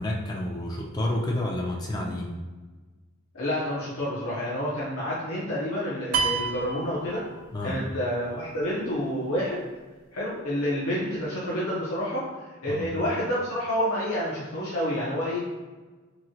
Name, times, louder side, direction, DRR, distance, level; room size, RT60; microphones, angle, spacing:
voice 1, 0.0-2.3 7.5-7.8 12.7-12.9, left 1 dB, 20° left, -1 dB, 0.3 m, -29 dB
voice 2, 3.3-7.2 7.6-9.7 10.1-12.2 12.6-15.4, equal, 85° left, -7 dB, 0.7 m, -29 dB
sound 1, 6.1-7.8, right 5 dB, 80° right, 0.4 m, -29 dB
3.0 x 2.7 x 2.7 m, 1.3 s
head